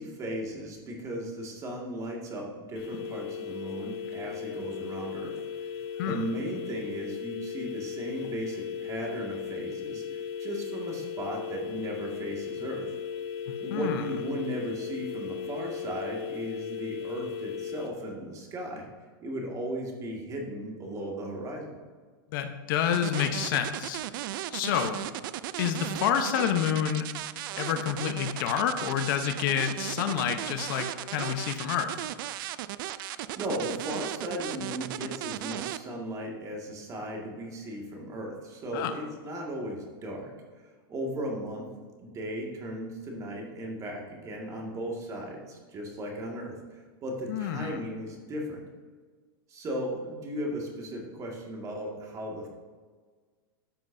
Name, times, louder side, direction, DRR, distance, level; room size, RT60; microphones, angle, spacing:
voice 1, 0.0-5.4 6.1-12.9 13.6-18.9 19.2-21.8 33.4-40.3 40.9-48.7 49.5-52.5, right 1 dB, 25° right, 0 dB, 2.0 m, -36 dB
sound 1, 2.7-17.9, left 7 dB, 85° left, 1.5 m, -37 dB
voice 2, 13.5-14.0 22.3-24.0 24.5-25.0 25.6-27.1 27.6-31.9 38.7-38.9 47.3-47.8, left 9 dB, 60° left, 7 dB, 0.9 m, -28 dB
sound 2, 22.9-35.8, right 14 dB, 60° right, 0.4 m, -36 dB
13.0 x 7.6 x 2.7 m, 1.5 s
supercardioid pair, 145°, 12 cm